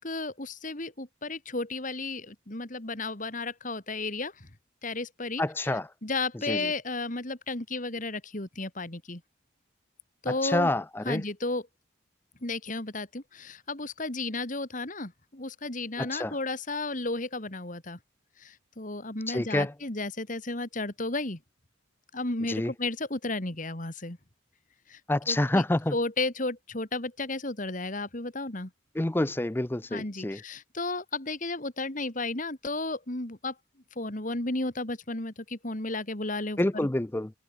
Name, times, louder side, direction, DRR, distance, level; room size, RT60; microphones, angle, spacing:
voice 1, 0.0-4.5 4.8-9.2 10.2-10.7 11.0-11.7 12.4-18.0 18.4-21.4 22.1-24.2 24.9-25.0 25.3-25.6 25.9-28.7 29.9-33.6 34.0-36.9, left 2 dB, 40° left, 2.5 m, -33 dB
voice 2, 5.4-5.9 6.5-6.6 10.4-11.2 16.0-16.3 19.3-19.7 22.5-22.7 25.1-25.9 29.0-30.4 36.6-37.3, left 1 dB, 10° left, 0.5 m, -27 dB
head